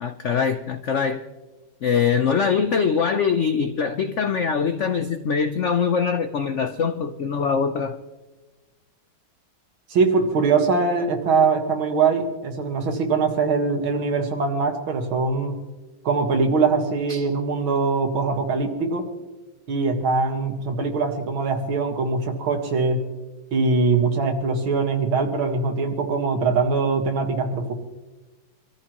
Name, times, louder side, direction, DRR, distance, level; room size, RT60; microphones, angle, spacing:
voice 1, 0.0-1.2 1.8-8.0 17.1-17.2, left 6 dB, 90° left, 8 dB, 0.6 m, -23 dB
voice 2, 9.9-15.6 16.0-19.1 19.7-23.0 23.5-27.7, right 4 dB, 80° right, 4 dB, 2.5 m, -22 dB
25.5 x 14.0 x 3.0 m, 1.2 s
omnidirectional pair, 2.2 m